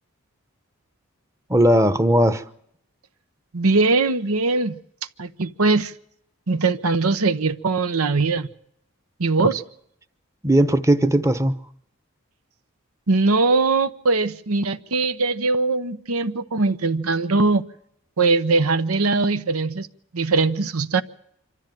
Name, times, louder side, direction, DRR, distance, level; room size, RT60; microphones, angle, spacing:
voice 1, 1.5-2.4 10.4-11.5, right 1 dB, 15° right, 0.9 m, -17 dB
voice 2, 3.5-4.8 5.2-5.9 6.5-8.5 9.2-9.6 13.1-17.6 18.2-19.9 20.1-21.0, right 3 dB, 85° right, 1.0 m, -21 dB
26.0 x 13.0 x 9.2 m
head